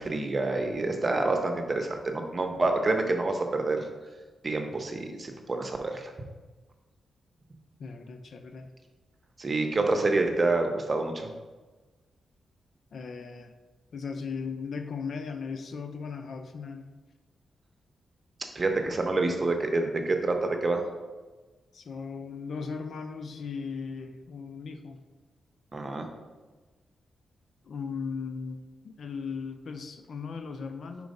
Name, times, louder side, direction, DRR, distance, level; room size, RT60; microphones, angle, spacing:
voice 1, 0.0-3.9 4.4-6.1 9.4-11.3 18.5-20.8 25.7-26.1, right 2 dB, 35° right, 4 dB, 0.9 m, -27 dB
voice 2, 7.8-8.7 12.9-13.5 13.9-16.9 21.7-25.0 27.6-31.1, left 5 dB, 65° left, 7 dB, 0.5 m, -37 dB
4.6 x 4.6 x 5.3 m, 1.3 s
cardioid pair, 85°, 0 cm